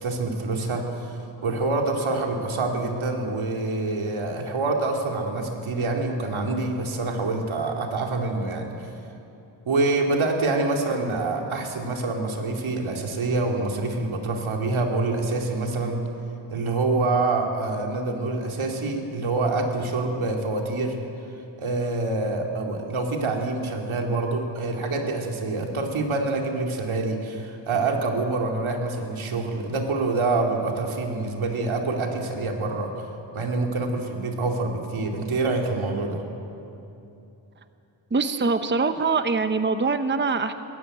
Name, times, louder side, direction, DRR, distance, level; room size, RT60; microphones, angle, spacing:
voice 1, 0.0-8.9 9.7-16.0 16.5-21.0 21.6-33.1 33.3-36.2, right 3 dB, 80° right, 2 dB, 2.7 m, -26 dB
voice 2, 38.1-40.5, right 4 dB, 25° right, 9 dB, 0.9 m, -23 dB
21.5 x 15.0 x 9.1 m, 2.8 s
wide cardioid pair, 95°, 48 cm